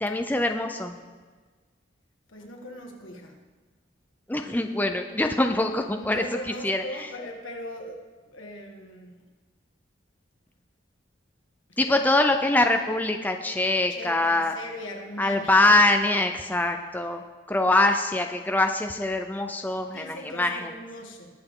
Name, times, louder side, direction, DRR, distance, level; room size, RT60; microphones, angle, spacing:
voice 1, 0.0-0.9 4.3-7.1 11.8-14.5 15.2-17.2 17.5-20.7, left 2 dB, 10° left, 5 dB, 0.5 m, -24 dB
voice 2, 2.3-3.4 5.1-5.2 6.0-9.2 11.9-12.0 13.9-15.7 19.9-21.3, left 1 dB, 90° left, 2 dB, 1.8 m, -39 dB
20.5 x 6.9 x 3.8 m, 1.4 s
head